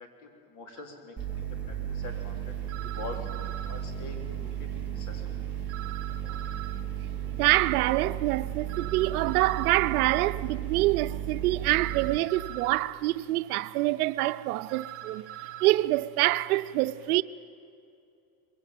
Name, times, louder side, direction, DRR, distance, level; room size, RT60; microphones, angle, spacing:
voice 1, 0.0-2.4 2.7-3.3 3.7-5.3, left 3 dB, 45° left, 4.0 m, -44 dB
sound 1, 0.8-0.9 2.7-3.8 5.7-6.8 8.7-9.8 11.7-12.8 14.7-15.7, right 12 dB, 30° right, 1.8 m, -42 dB
sound 2, 1.2-12.2, right 10 dB, 5° right, 3.3 m, -35 dB
voice 2, 7.4-15.3 15.6-17.2, right 18 dB, 80° right, 0.8 m, -26 dB
21.5 x 16.5 x 9.1 m
supercardioid pair, 140°, 44 cm